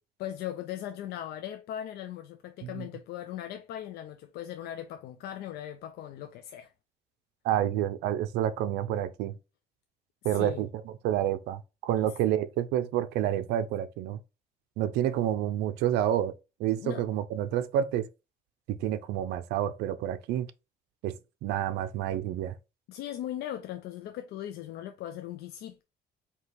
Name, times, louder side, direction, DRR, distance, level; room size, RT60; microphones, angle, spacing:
voice 1, 0.2-6.7 10.2-10.6 12.0-12.1 16.8-17.1 22.9-25.8, left 11 dB, 75° left, 0.5 m, -39 dB
voice 2, 7.4-9.4 10.2-14.2 14.8-16.3 16.6-18.1 18.7-20.5 21.0-21.2 21.4-22.5, right 11 dB, 85° right, 0.5 m, -29 dB
4.5 x 2.9 x 3.3 m
cardioid pair, 110°, 17 cm